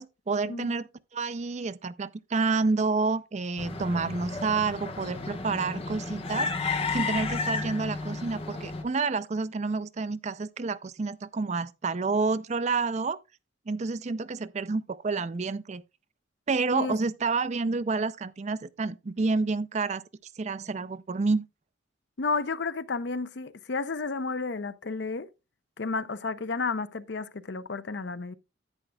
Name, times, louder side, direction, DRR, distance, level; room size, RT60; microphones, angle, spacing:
voice 1, 0.0-13.2 13.7-15.8 16.5-20.0 20.4-21.5, right 4 dB, 35° right, 0.4 m, -29 dB
sound 1, 3.6-8.8, left 3 dB, 30° left, 1.2 m, -32 dB
voice 2, 22.2-25.3 25.8-28.3, left 4 dB, 60° left, 0.6 m, -32 dB
10.5 x 8.9 x 2.3 m
head